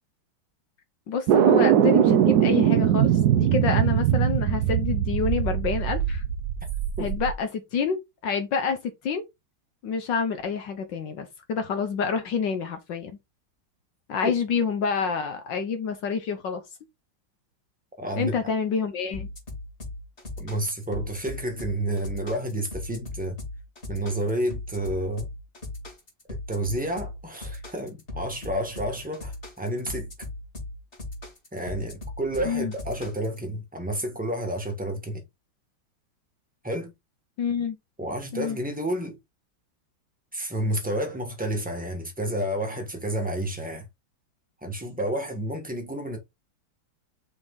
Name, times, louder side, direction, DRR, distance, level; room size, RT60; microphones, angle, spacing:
voice 1, 1.1-6.2 7.0-9.2 9.8-13.1 14.1-16.6 18.2-19.3 32.4-32.7 37.4-37.8 38.3-38.6, left 6 dB, 65° left, 1.5 m, -28 dB
sound 1, 1.3-7.3, right 10 dB, 65° right, 1.0 m, -21 dB
voice 2, 18.0-18.4 20.4-23.4 23.9-25.3 26.3-30.1 31.5-35.2 36.6-36.9 38.0-39.2 40.3-43.8 44.6-46.2, right 1 dB, 5° right, 1.3 m, -30 dB
sound 2, 19.1-33.4, left 2 dB, 25° left, 3.3 m, -38 dB
6.2 x 4.3 x 3.8 m
omnidirectional pair, 2.2 m